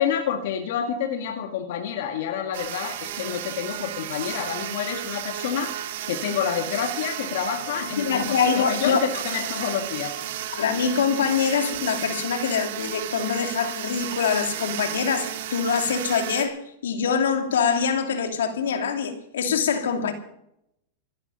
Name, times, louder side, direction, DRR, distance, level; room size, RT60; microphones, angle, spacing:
voice 1, 0.0-5.7 6.1-10.2, left 8 dB, 70° left, 2.1 m, -28 dB
sound 1, 2.5-16.5, right 11 dB, 70° right, 2.2 m, -33 dB
voice 2, 8.0-9.1 10.6-20.1, left 6 dB, 90° left, 2.8 m, -24 dB
16.5 x 12.5 x 5.7 m
hypercardioid pair, 125°, 0 cm